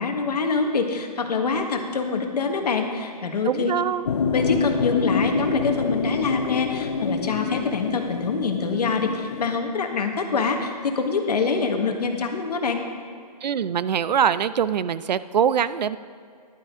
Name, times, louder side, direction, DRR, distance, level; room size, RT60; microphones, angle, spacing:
voice 1, 0.0-3.7 4.3-12.8, left 4 dB, 70° left, 4 dB, 1.5 m, -25 dB
voice 2, 3.4-4.1 13.4-16.0, right 8 dB, 80° right, 16 dB, 0.5 m, -23 dB
sound 1, 4.1-9.6, left 4 dB, 40° left, 0.5 m, -26 dB
13.0 x 11.5 x 3.7 m, 2.2 s
hypercardioid pair, 180°, 21 cm